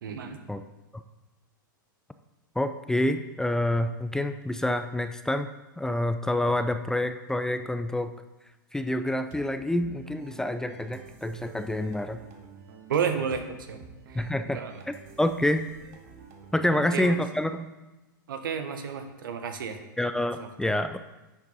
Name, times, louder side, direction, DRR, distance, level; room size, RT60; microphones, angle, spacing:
voice 1, 0.0-0.4 12.9-13.4 13.7-13.8 14.1-14.3 14.5-14.7 16.7-17.2 18.3-19.8 20.4-20.5, right 7 dB, 75° right, 8 dB, 1.2 m, -31 dB
voice 2, 2.6-5.5 5.8-8.1 8.7-12.2 14.1-14.6 14.9-15.6 16.5-17.7 20.0-21.0, left 1 dB, 5° left, 9 dB, 0.4 m, -27 dB
sound 1, 9.3-17.4, right 6 dB, 55° right, 1.7 m, -49 dB
10.5 x 7.2 x 4.0 m, 1.1 s
hypercardioid pair, 110°, 11 cm